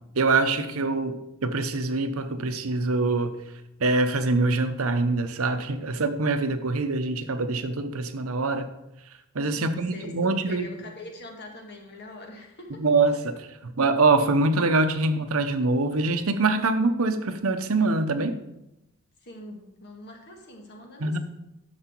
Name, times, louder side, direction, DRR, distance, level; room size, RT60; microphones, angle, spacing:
voice 1, 0.2-1.2 1.4-3.3 3.8-8.7 9.3-10.8 12.8-18.4 21.0-21.2, right 3 dB, 75° right, 9 dB, 0.8 m, -24 dB
voice 2, 9.5-12.8 19.2-21.2, left 2 dB, 50° left, 2 dB, 1.9 m, -43 dB
11.0 x 6.9 x 4.5 m, 0.89 s
head